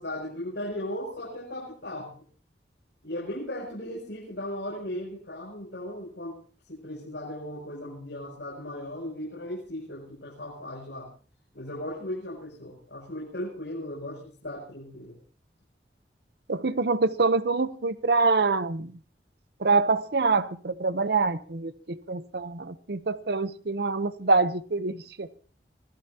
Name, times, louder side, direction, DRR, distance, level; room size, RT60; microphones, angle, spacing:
voice 1, 0.0-2.2 3.0-6.4 6.7-11.1 11.5-15.2, left 1 dB, 75° left, 7.2 m, -37 dB
voice 2, 16.5-18.9 19.6-25.3, right 3 dB, 65° right, 0.8 m, -25 dB
26.0 x 18.0 x 2.8 m
head